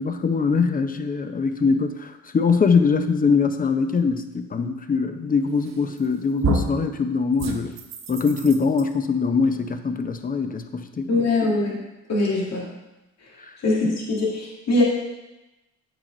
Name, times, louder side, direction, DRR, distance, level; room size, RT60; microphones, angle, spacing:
voice 1, 0.0-7.8 8.1-11.1 13.8-13.9, left 5 dB, 30° left, 8 dB, 0.6 m, -22 dB
sound 1, 5.7-6.1 6.4-6.8 7.4-8.8, right 3 dB, 60° right, 1.0 m, -28 dB
voice 2, 11.1-11.8 12.1-12.6 13.6-14.8, left 2 dB, 60° left, -3 dB, 2.0 m, -22 dB
8.3 x 4.8 x 3.9 m, 1.0 s
cardioid pair, 90°, 30 cm